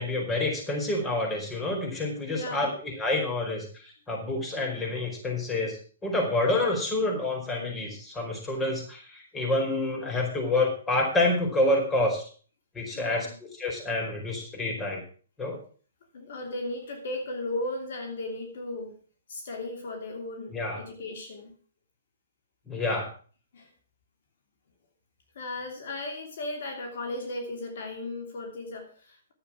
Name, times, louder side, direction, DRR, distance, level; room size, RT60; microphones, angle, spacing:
voice 1, 0.0-5.8 6.0-12.2 12.7-13.3 13.6-15.0 15.4-15.6 20.5-20.8 22.7-23.1, left 2 dB, 10° left, -1 dB, 4.8 m, -28 dB
voice 2, 2.3-2.7 12.9-13.3 16.1-19.0 19.3-21.5 23.5-23.7 25.3-29.3, left 2 dB, 60° left, 4 dB, 2.8 m, -36 dB
11.5 x 8.3 x 6.1 m, 0.41 s
hypercardioid pair, 130°, 0 cm